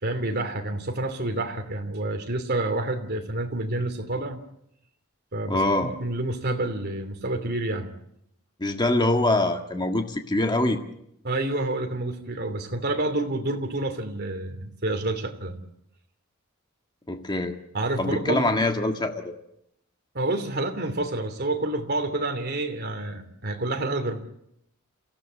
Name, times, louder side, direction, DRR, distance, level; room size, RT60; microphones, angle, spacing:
voice 1, 0.0-4.4 5.3-7.9 11.2-15.6 17.7-18.5 20.1-24.2, right 2 dB, 50° right, 5 dB, 3.0 m, -28 dB
voice 2, 5.5-5.9 8.6-10.8 17.1-17.6 18.0-19.3, left 2 dB, 20° left, 5 dB, 1.7 m, -24 dB
28.0 x 16.5 x 8.2 m, 0.78 s
head